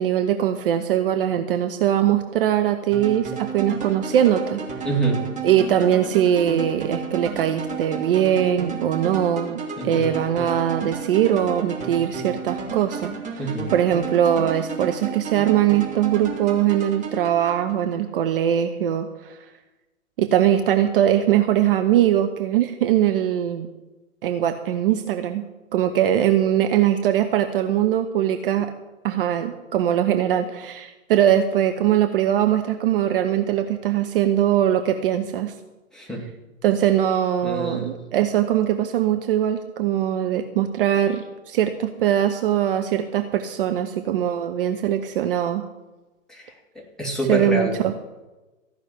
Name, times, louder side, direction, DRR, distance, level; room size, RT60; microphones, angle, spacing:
voice 1, 0.0-4.6 5.4-19.4 20.2-23.7 24.2-25.4 25.7-28.7 29.0-35.5 36.6-45.6 47.3-47.9, right 10 dB, 40° right, 7 dB, 0.9 m, -21 dB
sound 1, 2.9-18.0, right 5 dB, 20° right, 2.3 m, -33 dB
voice 2, 4.8-5.3 9.8-10.1 13.4-13.7 35.9-36.3 37.4-38.0 46.3-47.7, right 2 dB, ahead, -2 dB, 2.4 m, -27 dB
14.5 x 6.2 x 9.7 m, 1.1 s
figure-of-eight pair, 110°, 41 cm